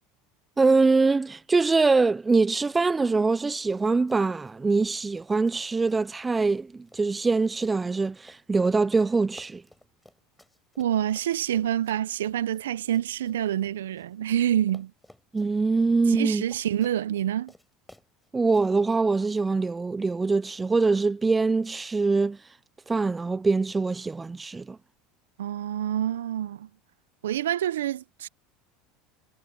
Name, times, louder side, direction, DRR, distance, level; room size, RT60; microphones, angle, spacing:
voice 1, 0.6-9.6 15.3-16.4 18.3-22.4 22.9-24.8, right 3 dB, 20° right, 0.3 m, -23 dB
Run, 2.3-2.8 3.1-14.4 14.7-18.6, left 1 dB, 5° left, 4.3 m, -56 dB
voice 2, 10.8-14.9 16.1-17.5 25.4-26.7 27.2-28.3, right 11 dB, 90° right, 0.6 m, -27 dB
hypercardioid pair, 90°, 0 cm